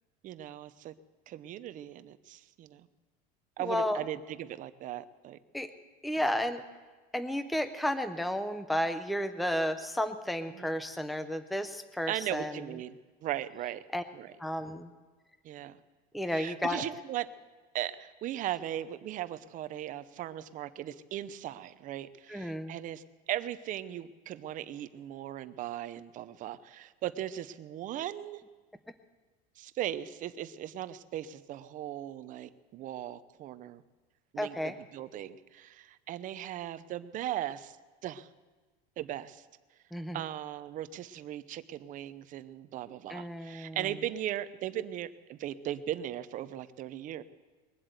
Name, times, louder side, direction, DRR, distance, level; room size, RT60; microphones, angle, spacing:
voice 1, 0.2-0.9 1.3-2.8 3.6-5.4 10.5-10.7 12.1-13.0 13.2-13.8 14.1-14.3 15.4-15.8 16.3-17.3 17.7-23.0 23.3-28.4 29.6-33.8 34.3-37.8 38.0-38.3 39.0-39.4 40.1-47.2, right 12 dB, 40° right, 13 dB, 0.7 m, -38 dB
voice 2, 3.6-4.0 5.5-5.7 6.0-6.6 7.1-12.7 13.9-14.0 14.4-14.9 16.1-16.8 22.3-22.8 34.4-34.8 39.9-40.2 43.1-43.8, left 1 dB, ahead, 10 dB, 0.6 m, -32 dB
21.5 x 8.0 x 8.0 m, 1.3 s
cardioid pair, 145°, 20 cm